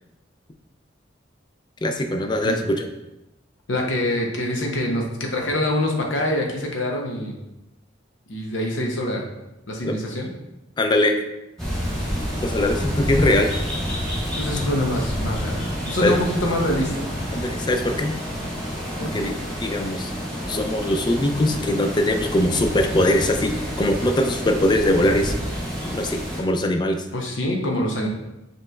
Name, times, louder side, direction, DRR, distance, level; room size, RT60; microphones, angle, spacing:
voice 1, 1.8-2.9 9.8-10.0 10.8-11.2 12.4-13.5 16.0-16.2 17.3-18.1 19.0-19.3 19.6-20.1 20.5-25.3 25.9-27.0, left 1 dB, 25° left, 5 dB, 0.3 m, -21 dB
voice 2, 3.7-7.3 8.3-9.2 9.7-10.3 14.3-17.1 19.0-19.2 27.1-28.1, left 1 dB, 80° left, 1 dB, 0.8 m, -25 dB
sound 1, 11.6-26.4, equal, 5° left, 1.3 m, -28 dB
5.2 x 3.0 x 2.3 m, 0.93 s
head